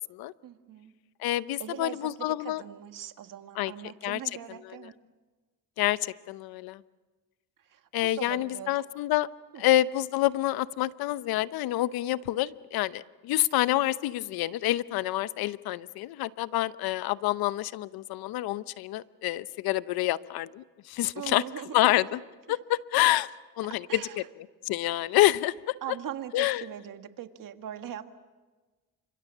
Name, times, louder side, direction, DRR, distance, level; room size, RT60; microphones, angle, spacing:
voice 1, 0.4-1.0 1.6-4.9 7.6-8.9 9.5-9.6 21.2-21.9 22.5-22.6 23.9-24.3 25.8-28.1, right 10 dB, 65° right, 8 dB, 1.7 m, -41 dB
voice 2, 1.2-2.6 3.6-3.7 4.0-4.2 5.8-6.8 7.9-9.3 9.6-21.4 21.7-22.2 22.5-23.3 23.6-24.0 24.6-25.7 26.3-26.6, left 15 dB, 85° left, 16 dB, 0.8 m, -27 dB
29.0 x 26.0 x 7.3 m, 1.3 s
cardioid pair, 90°, 35 cm